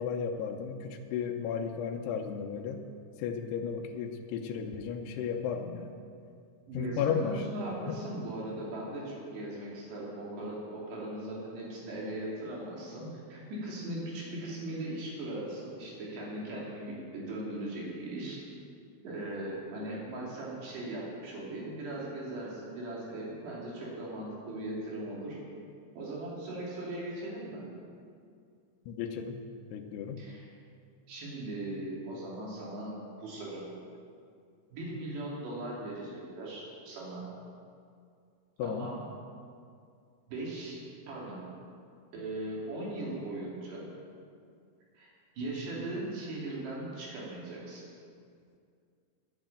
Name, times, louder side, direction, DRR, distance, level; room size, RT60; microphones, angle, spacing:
voice 1, 0.0-2.8 3.2-5.9 6.7-7.5 7.8-8.0 28.9-29.4 29.7-30.2 38.6-38.9, left 7 dB, 80° left, 3 dB, 2.9 m, -34 dB
voice 2, 6.7-18.4 19.0-25.4 25.9-27.7 30.2-30.5 31.1-32.9 33.2-33.7 34.7-37.3 38.6-39.0 40.3-41.4 42.1-43.9 45.0-47.8, right 1 dB, 80° right, -5 dB, 5.0 m, -39 dB
11.0 x 9.4 x 9.0 m, 2.3 s
omnidirectional pair, 4.8 m